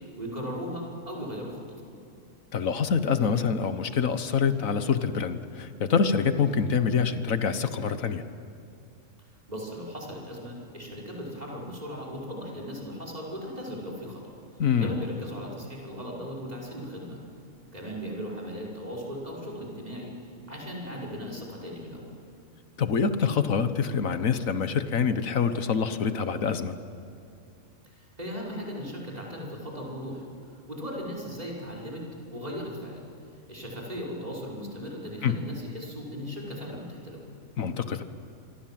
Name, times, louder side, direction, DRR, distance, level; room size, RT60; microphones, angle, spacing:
voice 1, 0.2-1.9 9.5-14.3 14.8-17.2 17.7-20.1 20.5-22.2 27.9-30.2 30.7-32.0 32.3-33.1 33.5-37.4, equal, 30° right, -2 dB, 5.6 m, -37 dB
voice 2, 2.5-8.2 14.6-15.0 22.8-26.7 35.2-35.4 37.6-38.0, left 6 dB, 80° left, 10 dB, 1.6 m, -26 dB
27.0 x 24.0 x 7.6 m, 2.7 s
omnidirectional pair, 1.4 m